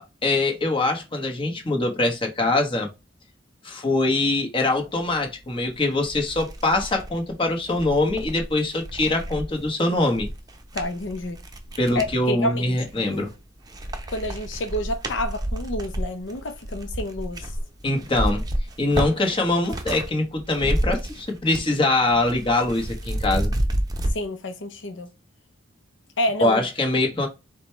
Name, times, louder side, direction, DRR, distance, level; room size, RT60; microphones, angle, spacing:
voice 1, 0.2-2.9 3.6-10.3 11.8-13.3 17.8-18.4 18.8-23.6 26.4-27.3, left 2 dB, 30° left, 1.1 m, -23 dB
sound 1, 5.5-5.6 6.0-12.2 12.7-13.4 13.7-20.1 20.4-21.8 22.0-24.1, right 1 dB, 20° right, 0.7 m, -30 dB
voice 2, 10.7-11.4 11.9-13.3 14.1-17.6 24.1-25.1 26.2-26.6, left 1 dB, 75° left, 0.6 m, -29 dB
5.0 x 2.3 x 4.3 m
head